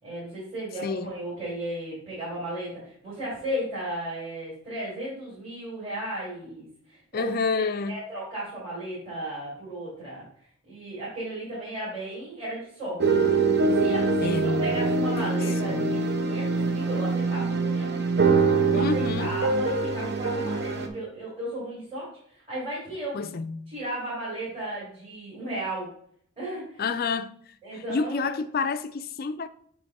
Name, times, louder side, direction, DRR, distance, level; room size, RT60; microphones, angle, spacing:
voice 1, 0.0-10.2 10.7-13.2 13.8-18.0 18.6-23.2 23.7-25.9 26.4-26.9 27.6-28.4, right 1 dB, 25° right, 3.2 m, -35 dB
voice 2, 0.8-1.1 7.1-8.0 14.2-14.8 15.2-16.0 18.7-19.3 23.1-23.7 26.8-27.3 27.7-29.5, left 4 dB, 40° left, 0.4 m, -29 dB
sound 1, 13.0-20.9, right 4 dB, 50° right, 0.8 m, -24 dB
7.9 x 3.1 x 5.4 m
head